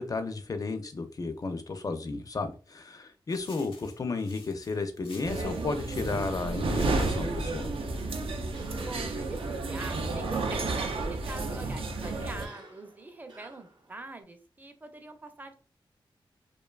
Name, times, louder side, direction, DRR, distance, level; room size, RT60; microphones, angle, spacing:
voice 1, 0.0-7.7, left 3 dB, 40° left, 8 dB, 0.4 m, -33 dB
sound 1, 3.3-8.5, left 3 dB, 80° left, 0.7 m, -53 dB
sound 2, 5.2-12.5, right 3 dB, 85° right, 0.4 m, -31 dB
Cough, 8.4-14.2, right 2 dB, 50° right, 0.7 m, -51 dB
voice 2, 8.8-15.5, right 2 dB, 20° right, 6 dB, 0.5 m, -44 dB
2.6 x 2.2 x 2.3 m, 0.37 s
cardioid pair, 75°, 9 cm